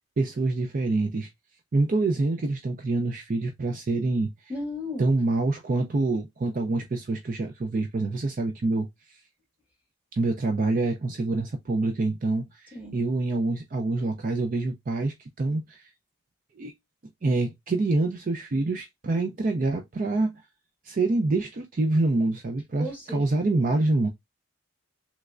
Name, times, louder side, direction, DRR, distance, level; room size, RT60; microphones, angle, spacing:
voice 1, 0.2-1.3 1.7-4.5 5.0-9.2 10.1-15.9 16.6-16.7 17.2-20.3 20.8-22.9 23.1-24.1, right 2 dB, 40° right, 0.4 m, -26 dB
voice 2, 4.5-5.1 12.7-13.0 22.8-23.3 23.5-23.8, left 1 dB, 5° right, 1.5 m, -35 dB
3.4 x 3.1 x 2.4 m
head